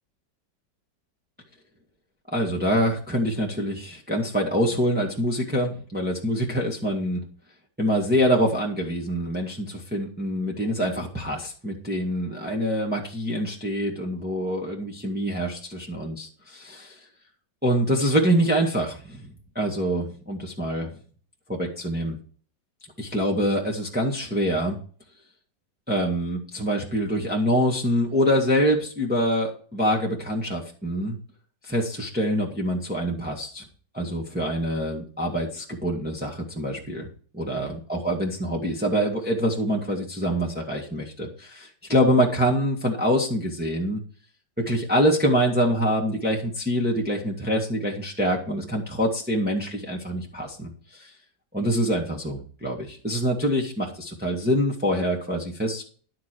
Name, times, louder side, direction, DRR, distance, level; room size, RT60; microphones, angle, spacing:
voice 1, 2.3-7.2 7.8-17.0 17.6-20.9 21.5-22.1 23.0-24.8 25.9-31.2 31.6-33.6 33.9-37.1 37.4-44.0 44.7-51.1 51.5-55.8, equal, 5° right, -1 dB, 1.8 m, -25 dB
11.5 x 7.9 x 4.6 m, 0.42 s
omnidirectional pair, 1.9 m